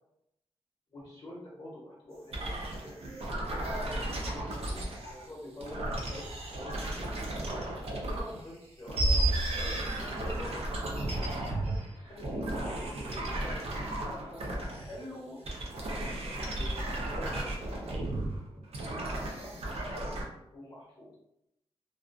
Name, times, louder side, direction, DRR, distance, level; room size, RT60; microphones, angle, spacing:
voice 1, 0.9-3.2 3.5-4.8 5.1-7.2 8.0-10.5 11.5-15.4 16.2-17.5 17.8-18.3 18.8-21.1, left 1 dB, 35° left, -6 dB, 0.8 m, -47 dB
sound 1, 2.3-5.3 5.6-8.4 8.8-15.0 15.4-20.2, right 1 dB, 70° right, 0.5 m, -34 dB
2.5 x 2.3 x 2.4 m, 0.81 s
wide cardioid pair, 145°, 11 cm